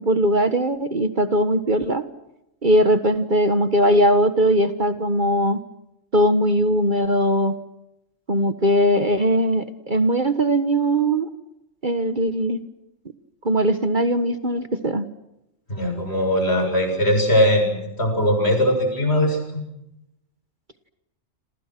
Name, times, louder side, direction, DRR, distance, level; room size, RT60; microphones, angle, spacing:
voice 1, 0.0-2.0 2.6-5.6 6.1-7.5 8.3-11.3 11.8-12.6 13.4-15.0, equal, 40° right, 9 dB, 1.6 m, -20 dB
voice 2, 15.7-19.4, equal, 55° left, 5 dB, 7.4 m, -20 dB
28.5 x 27.0 x 6.1 m, 0.85 s
omnidirectional pair, 1.3 m